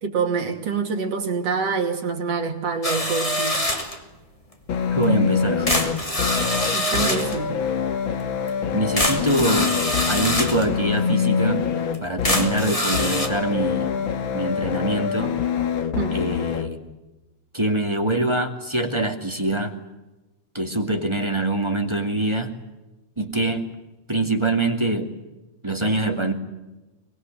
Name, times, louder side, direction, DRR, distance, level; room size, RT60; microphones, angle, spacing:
voice 1, 0.0-3.6 6.7-7.6 16.0-16.1, right 5 dB, 60° right, 4 dB, 3.7 m, -26 dB
sound 1, 2.8-4.0 5.0-5.1 5.7-7.4 8.5-8.6 9.0-10.7 11.2-11.3 11.9-12.0 12.2-13.3, left 1 dB, 10° left, 2.5 m, -24 dB
sound 2, 4.7-16.7, left 7 dB, 50° left, 1.8 m, -25 dB
voice 2, 4.9-5.9 8.7-9.7 10.1-11.6 12.0-13.9 14.3-15.3 16.1-16.8 17.5-19.7 20.5-22.5 23.2-23.6 24.1-25.1 25.6-26.3, right 2 dB, 10° right, 5 dB, 1.9 m, -24 dB
24.0 x 22.0 x 9.1 m, 1.1 s
omnidirectional pair, 3.3 m